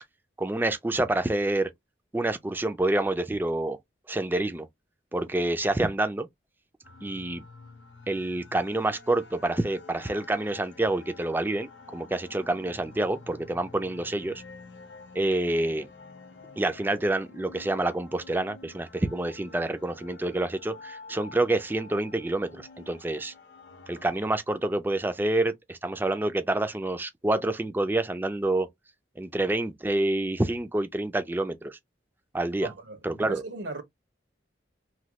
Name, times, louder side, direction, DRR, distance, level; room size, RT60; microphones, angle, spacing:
voice 1, 0.4-1.7 2.1-3.8 4.1-4.7 5.1-6.3 7.0-7.4 8.1-14.4 15.1-15.9 16.6-23.3 23.9-28.7 29.2-31.8 32.3-32.7 33.0-33.4, right 2 dB, 10° right, 0.3 m, -27 dB
sound 1, 6.8-24.4, left 4 dB, 90° left, 0.6 m, -49 dB
voice 2, 32.6-33.8, right 3 dB, 80° right, 0.9 m, -37 dB
3.1 x 2.2 x 2.8 m
head